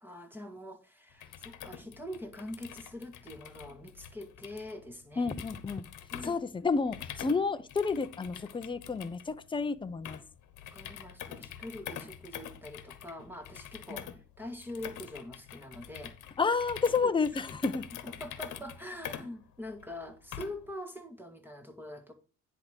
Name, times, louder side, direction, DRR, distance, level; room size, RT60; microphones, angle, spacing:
voice 1, 0.0-5.3 6.1-6.4 10.7-14.1 14.4-16.2 17.0-17.1 18.0-22.1, left 1 dB, 5° right, 1.6 m, -44 dB
sound 1, 1.1-20.7, left 10 dB, 85° left, 1.2 m, -46 dB
voice 2, 5.2-5.8 6.2-10.2 13.9-14.0 16.4-17.9, left 4 dB, 15° left, 0.6 m, -30 dB
10.5 x 3.7 x 6.4 m
cardioid pair, 90°, 30 cm